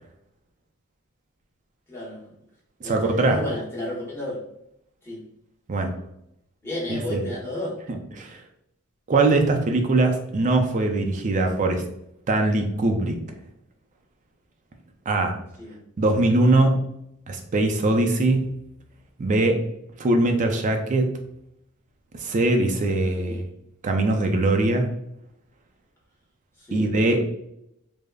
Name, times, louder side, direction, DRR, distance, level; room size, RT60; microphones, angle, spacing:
voice 1, 1.9-2.2 2.8-4.4 5.0-5.2 6.6-7.8 15.6-15.8 20.3-20.6 23.1-23.4 26.6-26.9, left 1 dB, 10° left, -5 dB, 0.9 m, -32 dB
voice 2, 2.8-3.4 5.7-5.9 6.9-7.2 7.9-8.4 9.1-11.8 12.3-13.2 15.1-15.4 16.0-16.8 17.3-18.5 19.2-19.6 20.0-21.2 22.1-23.4 23.8-24.9 26.7-27.2, right 2 dB, 35° right, 4 dB, 0.4 m, -21 dB
3.4 x 2.0 x 2.3 m, 0.78 s
head